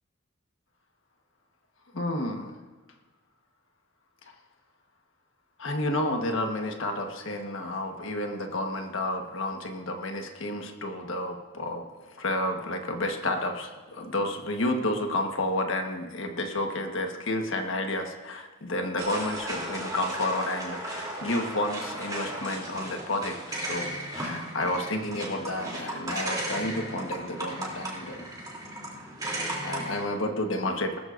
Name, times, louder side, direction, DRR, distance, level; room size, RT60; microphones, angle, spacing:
voice 1, 1.9-2.5 5.6-28.3 29.6-31.0, left 1 dB, 75° left, 4 dB, 1.3 m, -31 dB
sound 1, 19.0-30.0, right 1 dB, 20° right, 3.0 m, -35 dB
20.0 x 13.5 x 2.6 m, 1.3 s
head